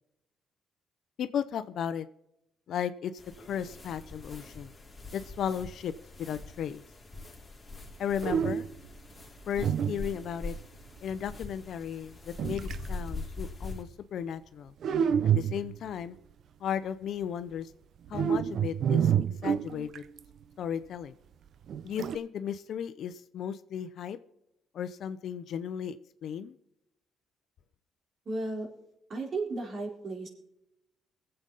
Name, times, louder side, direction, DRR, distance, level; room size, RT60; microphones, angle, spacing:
voice 1, 1.2-2.1 2.7-3.1 3.4-4.7 5.1-5.9 6.2-6.8 8.0-8.6 9.5-10.5 11.0-14.7 15.2-16.2 16.6-17.7 18.1-19.1 19.4-20.0 20.6-21.1 21.8-24.2 24.7-26.0 26.2-26.5, left 8 dB, 70° left, 12 dB, 0.7 m, -35 dB
sound 1, 3.2-13.8, left 2 dB, 15° left, 2.6 m, -43 dB
sound 2, 7.8-7.9 8.2-8.9 9.6-10.5 12.4-12.9 14.8-15.9 18.1-20.2 21.7-22.2, right 8 dB, 65° right, 0.6 m, -28 dB
voice 2, 28.3-28.7 29.1-30.3, right 2 dB, 50° right, 1 dB, 4.1 m, -34 dB
22.5 x 7.9 x 4.1 m, 0.85 s
cardioid pair, 90°, 0 cm